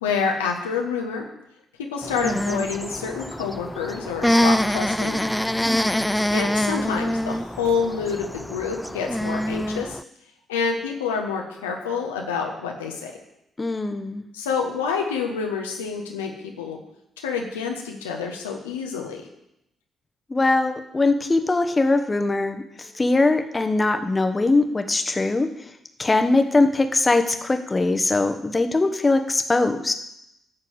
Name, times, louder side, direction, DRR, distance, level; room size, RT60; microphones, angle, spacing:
voice 1, 0.0-1.2 1.9-5.3 6.3-10.0 10.5-13.1 14.3-16.8 17.2-19.2, left 6 dB, 85° left, 2 dB, 1.3 m, -27 dB
sound 1, 2.0-10.0, equal, 5° left, 0.4 m, -25 dB
voice 2, 5.6-6.2 13.6-14.2 20.3-25.5 26.0-29.9, left 2 dB, 25° left, 8 dB, 1.3 m, -21 dB
13.5 x 4.5 x 8.0 m, 0.82 s
hypercardioid pair, 40°, 0 cm